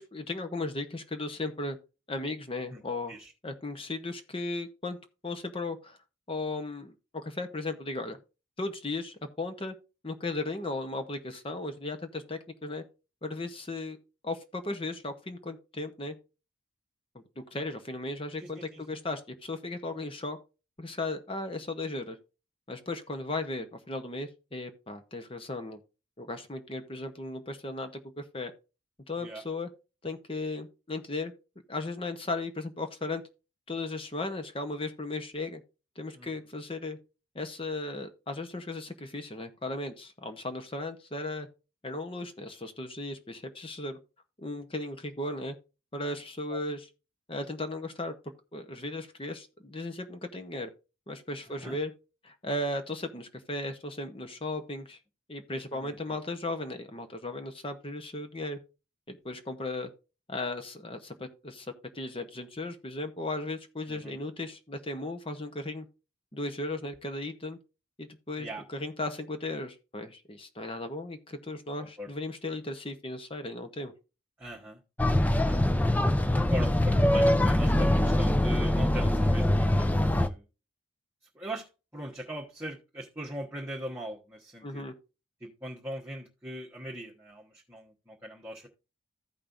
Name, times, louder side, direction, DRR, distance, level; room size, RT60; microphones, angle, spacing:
voice 1, 0.0-1.8 2.1-3.1 3.4-5.0 5.2-6.0 6.3-8.2 8.6-9.8 10.0-12.8 13.2-14.0 14.2-16.2 17.4-20.4 20.8-22.2 22.7-25.8 26.2-28.5 29.1-29.7 30.0-31.3 31.7-33.2 33.7-35.6 36.0-37.0 37.3-41.5 41.8-44.0 44.4-45.6 45.9-46.9 47.3-48.1 48.5-50.7 51.1-51.9 52.2-55.0 55.3-58.6 59.1-59.9 60.3-65.9 66.3-67.6 68.0-73.9 84.6-84.9, left 2 dB, 25° left, 8 dB, 0.9 m, -36 dB
voice 2, 18.4-19.0 29.2-29.4 36.1-36.4 46.5-46.6 51.6-51.8 55.7-56.2 63.9-64.2 68.4-68.6 72.0-72.1 74.4-74.8 75.4-75.7 76.3-80.4 81.3-84.9 85.4-88.7, equal, 10° right, -5 dB, 1.2 m, -40 dB
sound 1, 75.0-80.3, left 1 dB, 10° left, 0.4 m, -23 dB
15.0 x 5.3 x 2.6 m, 0.31 s
head